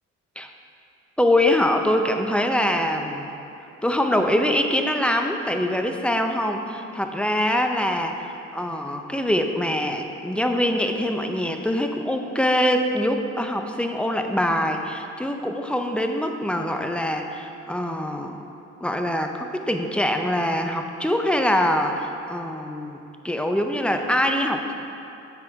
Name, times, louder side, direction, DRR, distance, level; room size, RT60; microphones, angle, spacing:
voice 1, 1.2-3.3 3.8-8.2 8.5-18.4 18.8-24.7, left 1 dB, 5° left, 4 dB, 0.5 m, -24 dB
7.7 x 5.8 x 4.7 m, 2.8 s
cardioid pair, 90°, 30 cm